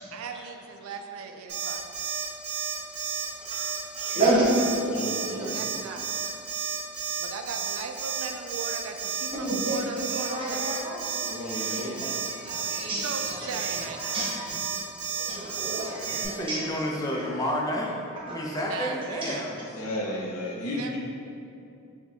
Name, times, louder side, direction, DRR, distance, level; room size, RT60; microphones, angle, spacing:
voice 1, 0.1-1.8 5.2-6.0 7.2-10.7 13.0-14.0 18.7-19.4 20.8-21.0, right 5 dB, 75° right, 5 dB, 0.3 m, -38 dB
Alarm, 1.5-16.3, right 7 dB, 50° right, 1.1 m, -32 dB
voice 2, 3.9-4.5 9.3-9.8 10.1-11.1 11.5-14.5 15.3-17.2 18.3-18.4 19.2-19.3, right 2 dB, 25° right, -7 dB, 0.8 m, -30 dB
voice 3, 4.8-5.6 11.3-12.0 15.0-15.3 19.7-21.0, left 1 dB, 90° left, -3 dB, 0.8 m, -34 dB
voice 4, 16.2-18.0 18.3-19.6, equal, 15° left, -2 dB, 0.4 m, -30 dB
4.4 x 2.2 x 4.3 m, 2.7 s
head